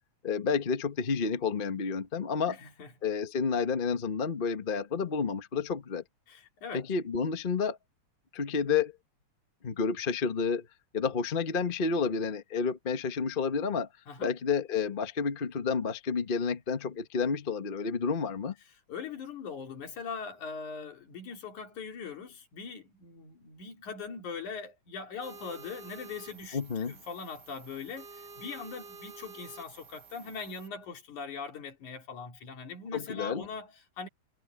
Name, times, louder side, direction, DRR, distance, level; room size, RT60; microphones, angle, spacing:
voice 1, 0.2-2.5 3.0-6.0 6.7-7.8 8.3-8.9 9.6-10.7 10.9-13.9 14.2-18.5 26.5-26.9 32.9-33.5, left 5 dB, 50° left, 0.6 m, -30 dB
voice 2, 2.5-2.9 6.3-6.9 14.1-14.4 18.9-34.1, left 5 dB, 90° left, 4.5 m, -41 dB
sound 1, 25.2-30.7, right 4 dB, 40° right, 2.2 m, -50 dB
omnidirectional pair, 3.3 m